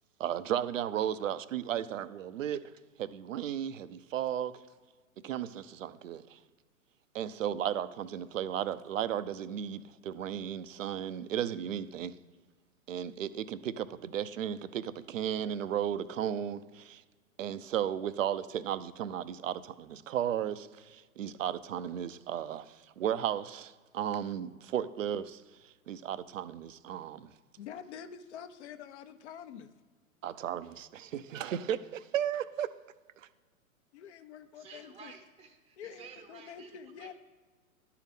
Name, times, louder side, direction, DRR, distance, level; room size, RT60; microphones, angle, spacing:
voice 1, 0.2-2.6 3.0-4.5 5.2-6.4 7.1-12.1 12.9-17.0 17.4-25.4 25.9-27.3 30.2-32.7, right 10 dB, 60° right, 0.7 m, -34 dB
voice 2, 27.6-29.7 33.9-35.1 35.8-37.1, left 8 dB, 50° left, 0.9 m, -47 dB
voice 3, 34.6-36.7 37.0-37.1, right 5 dB, 10° right, 0.8 m, -52 dB
12.0 x 4.7 x 5.3 m
figure-of-eight pair, 110°, 43 cm